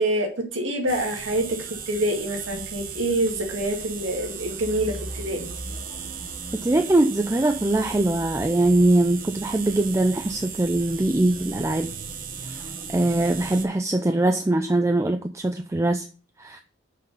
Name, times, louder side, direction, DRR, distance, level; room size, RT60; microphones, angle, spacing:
voice 1, 0.0-5.5, right 1 dB, 85° right, 2.1 m, -26 dB
sound 1, 0.9-13.7, right 6 dB, 45° right, 1.0 m, -36 dB
voice 2, 6.5-11.9 12.4-16.1 16.4-16.6, right 2 dB, 15° right, 0.4 m, -22 dB
6.5 x 5.8 x 5.3 m
head